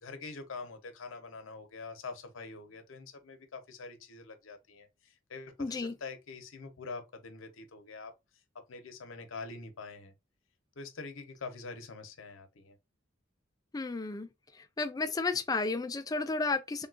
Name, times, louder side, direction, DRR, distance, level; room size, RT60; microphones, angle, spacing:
voice 1, 0.0-8.1 8.5-10.1 10.8-12.8, left 4 dB, 80° left, 0.7 m, -45 dB
voice 2, 5.6-5.9 13.7-14.3 14.6-16.9, left 3 dB, 20° left, 0.3 m, -32 dB
3.6 x 2.3 x 2.4 m
head